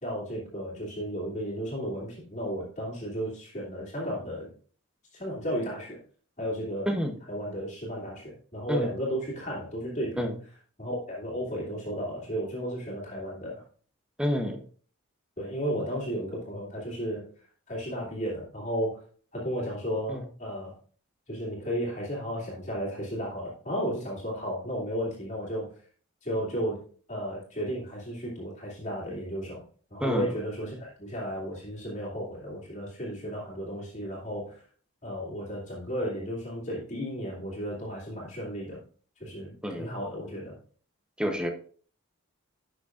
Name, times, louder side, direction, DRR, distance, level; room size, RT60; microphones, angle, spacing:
voice 1, 0.0-4.5 5.1-6.0 6.4-6.9 7.3-10.2 10.8-13.6 15.4-17.3 17.7-19.0 19.3-20.7 21.3-25.7 26.2-26.8 27.1-29.6 29.9-34.6 35.0-38.8 39.2-39.5 39.8-40.5, equal, 30° left, -5 dB, 2.6 m, -34 dB
voice 2, 6.9-7.2 8.7-8.9 10.2-10.3 14.2-14.6 20.1-20.2 30.0-30.3 39.6-39.9 41.2-41.5, equal, 5° right, 4 dB, 0.8 m, -28 dB
11.5 x 6.3 x 2.5 m, 0.43 s
head